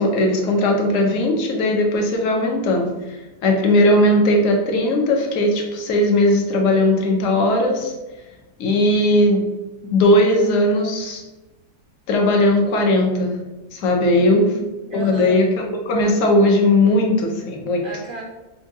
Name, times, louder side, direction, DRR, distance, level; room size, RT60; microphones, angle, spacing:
voice 1, 0.0-3.2 3.4-7.9 8.6-9.5 9.9-11.2 12.1-13.4 13.7-14.5 14.9-15.5 15.8-17.8, left 1 dB, 65° left, 1 dB, 0.9 m, -18 dB
voice 2, 14.2-15.4 17.8-18.2, right 3 dB, 75° right, -3 dB, 0.5 m, -34 dB
4.5 x 2.2 x 2.6 m, 1.1 s
omnidirectional pair, 1.5 m